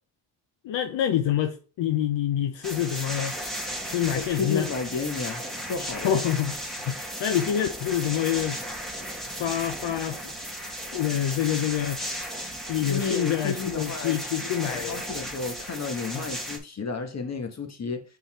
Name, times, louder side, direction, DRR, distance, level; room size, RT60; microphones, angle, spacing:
voice 1, 0.6-3.4 3.9-4.7 6.0-8.6 9.4-10.5 10.9-12.0 12.7-15.0 16.1-16.3, left 10 dB, 70° left, 0.8 m, -27 dB
sound 1, 2.6-16.6, equal, ahead, 1.7 m, -35 dB
voice 2, 4.1-6.2 12.8-14.2 14.6-18.0, left 5 dB, 35° left, 1.3 m, -32 dB
5.6 x 4.0 x 4.2 m
cardioid pair, 90°, 45 cm